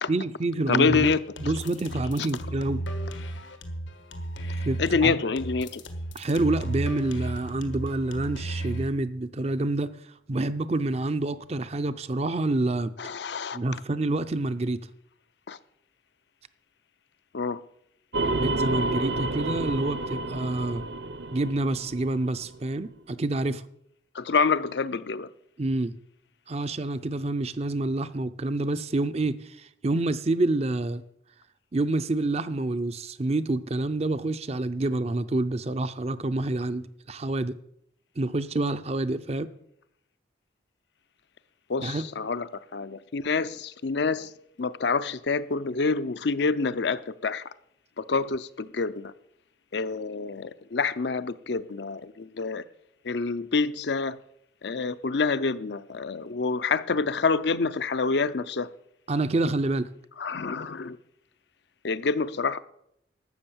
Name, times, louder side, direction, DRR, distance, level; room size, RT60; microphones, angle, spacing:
voice 1, 0.1-2.8 4.7-5.2 6.1-9.9 10.3-12.9 13.5-14.8 18.4-20.8 21.3-23.6 25.6-26.0 26.5-31.0 31.7-37.6 38.2-39.5 41.8-42.1 59.1-59.9, right 2 dB, 35° right, 0.5 m, -27 dB
voice 2, 0.7-1.2 4.8-5.8 13.0-13.6 15.5-15.6 17.3-17.6 24.1-25.3 41.7-44.3 44.6-47.4 48.0-49.1 49.7-52.6 53.0-54.2 54.6-58.7 60.2-61.0 61.8-62.6, left 4 dB, 65° left, 0.5 m, -27 dB
sound 1, 0.9-8.9, right 1 dB, 90° left, 1.5 m, -34 dB
sound 2, 18.1-22.6, right 2 dB, 65° right, 0.8 m, -30 dB
12.0 x 7.7 x 7.3 m
head